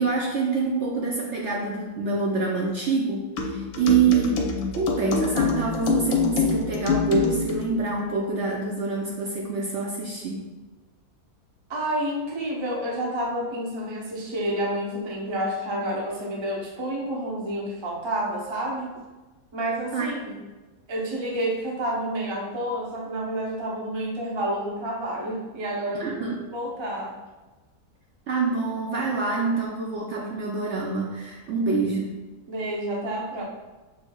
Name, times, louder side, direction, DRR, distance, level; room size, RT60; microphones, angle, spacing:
voice 1, 0.0-4.4 4.7-10.5 19.9-20.1 25.9-26.4 28.3-32.1, right 4 dB, 65° right, -2 dB, 0.7 m, -26 dB
sound 1, 3.4-7.6, left 5 dB, 70° left, 1.0 m, -25 dB
voice 2, 11.7-19.0 19.5-20.4 20.9-27.2 32.5-33.4, right 1 dB, 45° right, -3 dB, 0.3 m, -29 dB
6.3 x 3.2 x 2.3 m, 1.2 s
omnidirectional pair, 1.7 m